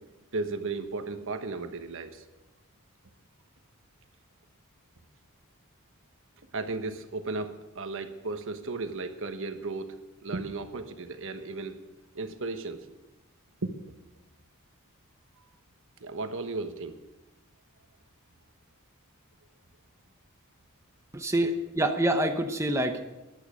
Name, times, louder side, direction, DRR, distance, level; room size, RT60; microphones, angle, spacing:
voice 1, 0.0-2.2 6.5-11.8 12.1-12.9 13.6-13.7 16.0-17.0, right 3 dB, 60° right, 8 dB, 1.2 m, -35 dB
voice 2, 21.1-23.0, right 1 dB, 15° right, 5 dB, 0.9 m, -26 dB
15.0 x 11.5 x 5.1 m, 1.1 s
head